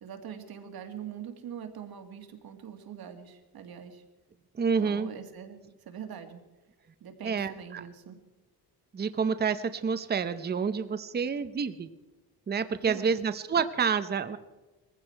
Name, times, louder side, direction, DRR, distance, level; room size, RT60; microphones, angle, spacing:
voice 1, 0.0-4.0 4.8-6.4 7.0-8.2 12.8-13.1, right 8 dB, 65° right, 5 dB, 2.1 m, -43 dB
voice 2, 4.6-5.1 7.2-7.8 8.9-11.9 12.5-14.4, right 6 dB, 25° right, 11 dB, 0.7 m, -28 dB
20.5 x 15.5 x 4.5 m, 1.2 s
wide cardioid pair, 165°, 39 cm